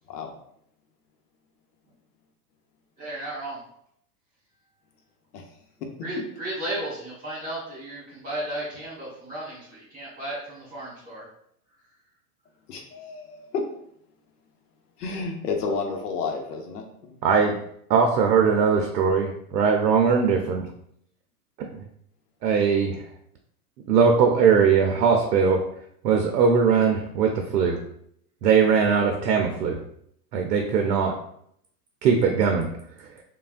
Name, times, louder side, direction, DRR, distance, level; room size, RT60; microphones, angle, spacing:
voice 1, 3.0-3.6 6.0-11.2, right 1 dB, 20° right, -8 dB, 1.4 m, -34 dB
voice 2, 12.7-13.6 15.0-17.3, left 4 dB, 70° left, 3 dB, 0.8 m, -31 dB
voice 3, 17.2-17.6 17.9-20.7 22.4-23.0 23.9-25.6 26.0-27.8 28.4-29.8 30.3-31.1 32.0-32.7, right 6 dB, 90° right, 3 dB, 0.6 m, -20 dB
3.2 x 2.2 x 2.4 m, 0.70 s
hypercardioid pair, 125°, 48 cm